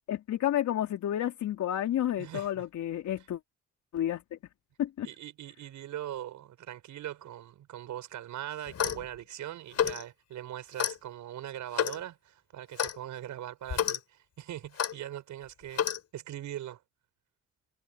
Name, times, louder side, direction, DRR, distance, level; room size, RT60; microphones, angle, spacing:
voice 1, 0.1-3.4 3.9-4.4 4.8-5.1, left 11 dB, 75° left, 3.6 m, -30 dB
voice 2, 2.2-2.7 5.0-15.9 16.1-16.8, right 12 dB, 75° right, 6.3 m, -41 dB
Clock, 8.7-9.1 9.7-10.0 10.8-11.0 11.7-12.0 12.8-13.0 13.7-14.0 14.8-14.9 15.7-16.0, left 8 dB, 55° left, 6.8 m, -29 dB
cardioid pair, 90°, 30 cm